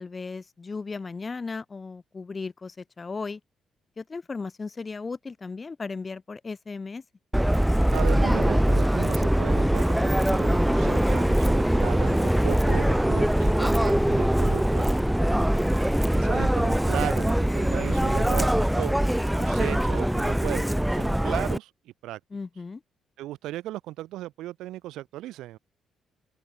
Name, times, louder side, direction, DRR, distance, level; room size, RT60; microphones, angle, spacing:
voice 1, 0.0-3.4 4.0-7.0 15.3-15.9 22.3-22.8, left 4 dB, 30° left, 2.4 m, -36 dB
Subway metro underground, 7.3-21.6, right 1 dB, 5° right, 0.7 m, -22 dB
voice 2, 7.9-15.0 16.1-19.0 19.4-22.2 23.2-25.6, right 15 dB, 90° right, 5.2 m, -36 dB
open air
cardioid pair, 90°, 0 cm